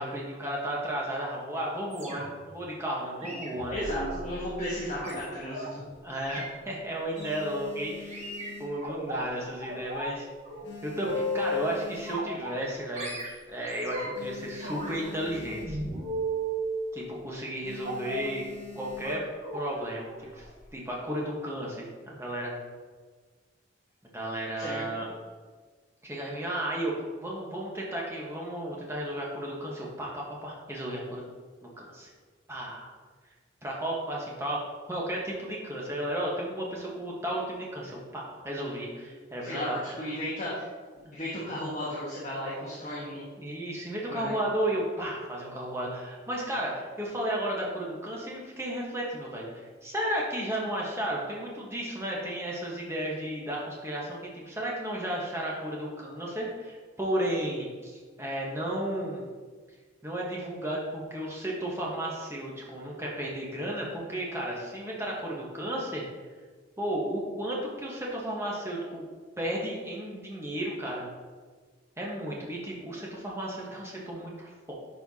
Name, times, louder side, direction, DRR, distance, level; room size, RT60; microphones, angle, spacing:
voice 1, 0.0-4.0 6.0-8.3 8.6-10.3 10.8-15.8 16.9-18.4 18.7-19.2 19.5-20.5 20.7-22.5 24.1-25.1 26.0-26.9 27.2-31.2 31.8-32.1 32.5-32.9 33.6-34.6 34.9-39.8 41.0-41.1 43.4-59.3 60.0-66.0 66.8-69.0 69.4-71.1 72.0-74.7, right 1 dB, 15° right, -4 dB, 1.2 m, -33 dB
sound 1, 1.9-2.5 3.2-5.7 6.1-6.5 7.2-7.5 8.1-9.2 9.6-10.1 10.4-11.7 12.1-12.7 13.0-14.3 14.6-16.7 17.8-18.3 19.0-19.1 19.4-19.6 20.0-20.2 20.5-20.6, equal, 35° right, 1.2 m, -36 dB
voice 2, 3.7-5.8 24.6-25.1 39.4-40.7 41.1-43.2 44.1-44.3, equal, 35° left, -7 dB, 1.3 m, -34 dB
sound 2, 5.8-6.5 6.9-9.4 9.7-10.1 10.4-12.6 13.1-13.2 13.4-13.5 13.8-16.0 16.3-16.6 16.9-17.2 17.6-19.5 20.2-20.8, left 3 dB, 65° left, 1.8 m, -45 dB
11.0 x 4.5 x 2.8 m, 1.5 s
head